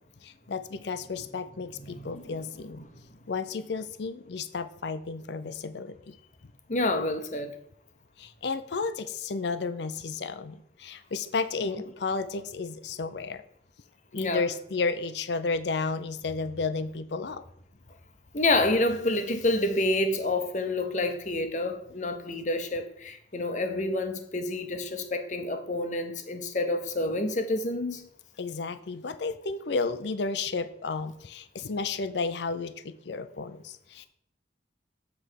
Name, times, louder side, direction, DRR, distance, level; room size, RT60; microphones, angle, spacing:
voice 1, 0.2-2.8 3.3-6.1 8.2-13.4 14.1-17.4 28.4-34.1, left 4 dB, 70° left, 0.5 m, -32 dB
voice 2, 1.8-2.4 2.9-3.0 6.7-7.6 14.1-14.4 18.3-28.1, left 2 dB, 40° left, 0.8 m, -28 dB
7.6 x 3.4 x 6.3 m
head